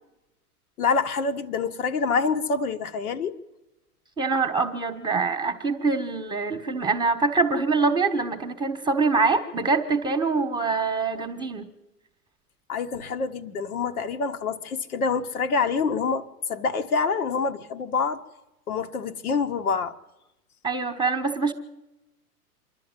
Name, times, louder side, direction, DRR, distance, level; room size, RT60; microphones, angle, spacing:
voice 1, 0.8-3.4 12.7-18.2 18.7-19.9, left 5 dB, 70° left, 6 dB, 1.5 m, -26 dB
voice 2, 4.2-11.7 20.6-21.5, right 4 dB, 10° right, 7 dB, 1.4 m, -24 dB
26.0 x 11.5 x 9.1 m, 0.97 s
hypercardioid pair, 110°, 46 cm